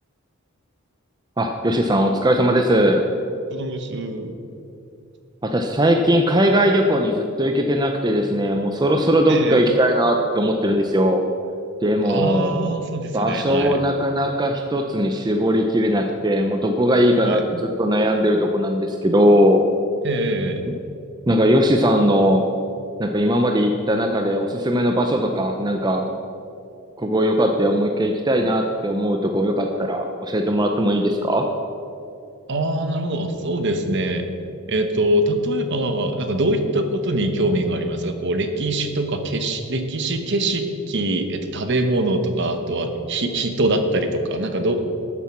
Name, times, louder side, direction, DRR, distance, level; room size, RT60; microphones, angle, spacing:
voice 1, 1.4-3.0 5.4-11.2 11.8-12.7 13.1-19.6 21.3-22.5 23.0-26.1 27.0-31.5, equal, 20° right, 4 dB, 0.5 m, -19 dB
voice 2, 3.5-4.3 9.3-9.7 12.0-13.8 17.2-17.4 20.0-20.7 32.5-34.2 34.7-44.9, right 1 dB, 50° right, 6 dB, 1.0 m, -23 dB
13.0 x 7.3 x 6.0 m, 2.6 s
head